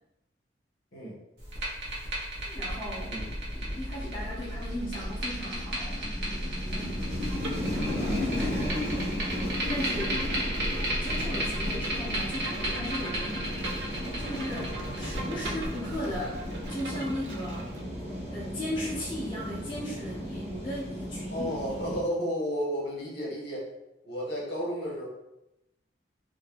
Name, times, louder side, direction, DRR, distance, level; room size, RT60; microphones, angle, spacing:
sound 1, 1.4-16.7, equal, 65° right, 0.9 m, -34 dB
voice 1, 2.5-3.2 3.5-6.0 6.7-7.4 7.7-8.9 9.7-10.2 11.0-13.5 14.2-17.7 18.3-21.5, equal, 25° left, -8 dB, 0.5 m, -37 dB
sound 2, 2.9-22.0, left 1 dB, 10° right, 1.2 m, -36 dB
Bowed string instrument, 7.3-17.8, right 2 dB, 85° right, 0.5 m, -42 dB
voice 2, 21.3-23.7 24.0-25.1, equal, 60° left, -4 dB, 0.9 m, -32 dB
2.6 x 2.5 x 2.4 m, 0.90 s
head